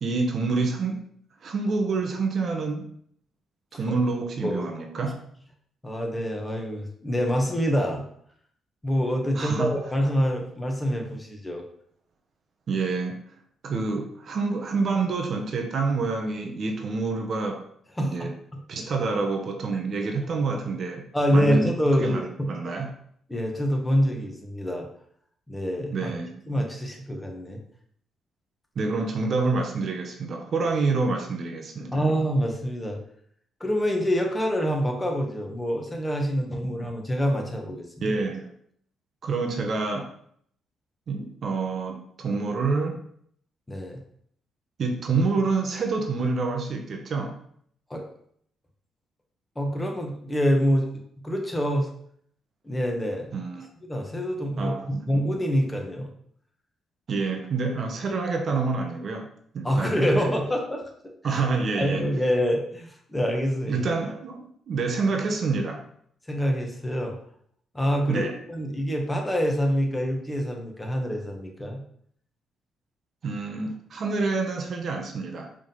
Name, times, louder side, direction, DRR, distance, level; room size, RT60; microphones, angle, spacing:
voice 1, 0.0-1.1 1.4-2.9 3.7-5.2 9.3-9.8 12.7-13.2 13.6-17.6 18.0-18.3 18.7-21.7 22.0-22.9 25.9-26.4 28.8-32.0 38.0-38.5 39.2-40.1 41.1-43.0 44.8-47.4 53.3-53.7 54.6-55.2 57.1-59.3 59.5-60.3 61.2-62.1 63.6-65.8 68.1-68.3 73.2-75.5, right 4 dB, 55° right, 3 dB, 1.1 m, -27 dB
voice 2, 5.8-8.0 8.8-11.6 18.0-18.8 21.1-22.5 23.3-24.9 25.5-26.1 26.5-27.6 31.9-33.0 33.6-38.2 43.7-44.0 47.9-48.0 49.5-50.9 51.2-51.9 52.6-53.3 53.9-56.1 59.6-60.8 61.2-61.4 61.7-63.8 66.3-67.1 67.7-71.8, equal, 15° left, 1 dB, 1.4 m, -26 dB
5.0 x 3.7 x 5.4 m, 0.65 s
cardioid pair, 90°, 0 cm